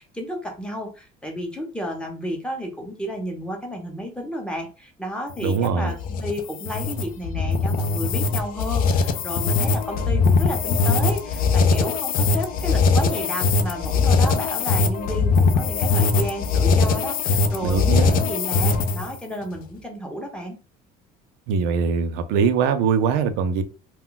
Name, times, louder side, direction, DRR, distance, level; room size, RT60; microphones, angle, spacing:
voice 1, 0.0-20.6, equal, 5° left, 0.7 m, -32 dB
sound 1, 5.3-19.2, left 4 dB, 55° left, 0.4 m, -21 dB
voice 2, 5.4-5.9 17.6-18.3 21.5-23.6, right 6 dB, 80° right, 0.4 m, -22 dB
2.2 x 2.1 x 3.8 m
cardioid pair, 130°, 17 cm